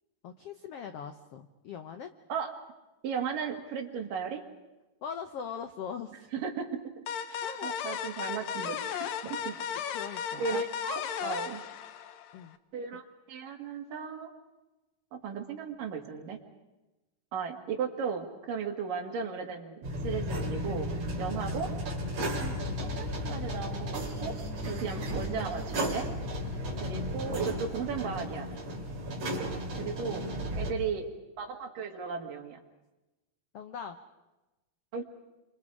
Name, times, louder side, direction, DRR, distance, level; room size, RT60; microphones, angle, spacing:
voice 1, 0.2-2.1 5.0-6.3 7.4-7.7 9.9-10.6 12.3-12.6 33.5-34.0, left 7 dB, 90° left, 7 dB, 1.3 m, -41 dB
voice 2, 3.0-4.4 6.3-6.8 7.3-9.6 10.4-11.6 12.7-14.3 15.1-16.4 17.3-20.9 21.2-21.7 22.4-22.5 22.8-24.4 24.7-26.1 26.8-28.5 29.8-30.3 30.6-31.1 31.4-32.6 34.9-35.0, right 6 dB, 70° right, 3 dB, 3.6 m, -35 dB
sound 1, 7.1-12.5, left 8 dB, 70° left, 1.8 m, -35 dB
sound 2, 19.8-30.7, equal, 45° right, 4.2 m, -34 dB
30.0 x 25.5 x 4.9 m, 1.0 s
omnidirectional pair, 4.0 m